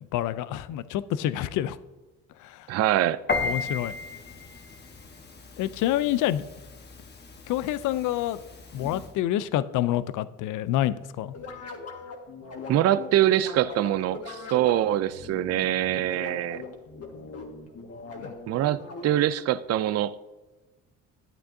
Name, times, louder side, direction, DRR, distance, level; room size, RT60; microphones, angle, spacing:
voice 1, 0.1-1.8 2.4-2.7 3.4-3.9 5.6-6.4 7.5-8.4 8.7-11.3 18.2-18.3, left 13 dB, 70° left, 15 dB, 0.5 m, -27 dB
voice 2, 2.7-3.2 12.7-16.6 18.5-20.2, right 12 dB, 50° right, 14 dB, 0.4 m, -24 dB
Piano, 3.3-9.1, left 4 dB, 30° left, 1.2 m, -35 dB
sound 1, 11.3-19.4, left 3 dB, 50° left, 1.6 m, -41 dB
12.0 x 8.7 x 2.7 m, 1.1 s
cardioid pair, 90°, 32 cm